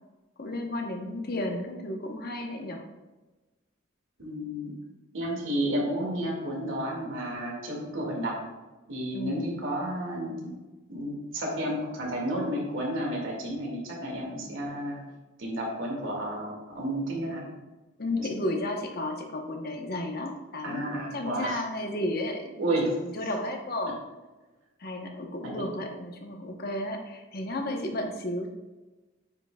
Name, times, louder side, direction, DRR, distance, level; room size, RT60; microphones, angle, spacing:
voice 1, 0.4-2.8 9.1-9.5 18.0-24.0 24.8-28.5, left 1 dB, 50° left, 3 dB, 0.9 m, -33 dB
voice 2, 4.2-4.7 5.1-8.4 8.9-10.6 10.9-15.0 15.4-17.4 18.2-18.3 20.6-21.6 22.6-22.9 25.4-25.5, right 1 dB, 80° right, -1 dB, 2.0 m, -31 dB
9.2 x 5.8 x 2.3 m, 1.2 s
head